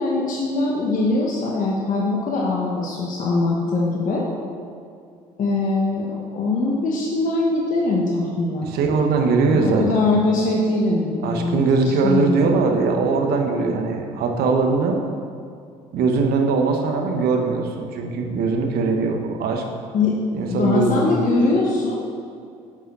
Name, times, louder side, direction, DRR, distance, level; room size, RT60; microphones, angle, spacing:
voice 1, 0.0-4.3 5.4-8.7 9.5-11.6 12.0-12.4 19.9-20.2 20.5-22.0, left 3 dB, 50° left, -3 dB, 1.4 m, -22 dB
voice 2, 8.6-10.0 11.2-15.0 15.9-19.6 20.3-21.2, right 4 dB, 70° right, 3 dB, 1.3 m, -21 dB
8.3 x 5.5 x 6.8 m, 2.4 s
supercardioid pair, 65°, 17 cm